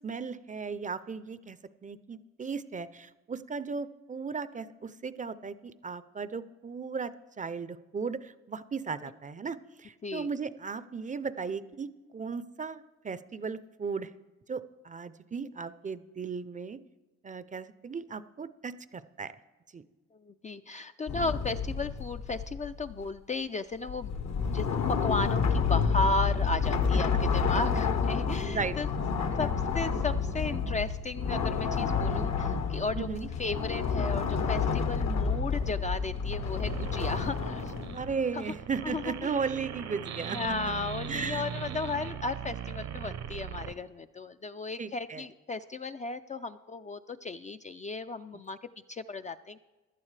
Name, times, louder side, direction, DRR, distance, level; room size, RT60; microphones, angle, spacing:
voice 1, 0.0-1.6 1.8-7.1 7.4-14.1 14.5-16.8 17.2-19.3 19.7-19.8 28.5-28.8 29.4-29.5 33.0-33.3 37.9-40.4 41.1-41.8 44.8-45.2, right 5 dB, 25° right, 14 dB, 0.5 m, -36 dB
voice 2, 20.1-24.2 24.5-28.9 29.4-37.7 38.3-38.5 38.8-39.3 40.3-48.6 48.9-49.6, left 3 dB, 25° left, 8 dB, 0.4 m, -35 dB
sound 1, 21.1-23.0 23.9-38.1, left 5 dB, 60° left, 1.0 m, -29 dB
sound 2, 36.5-43.7, right 8 dB, 60° right, 0.8 m, -39 dB
16.0 x 11.5 x 3.3 m, 1.2 s
cardioid pair, 90°, 30 cm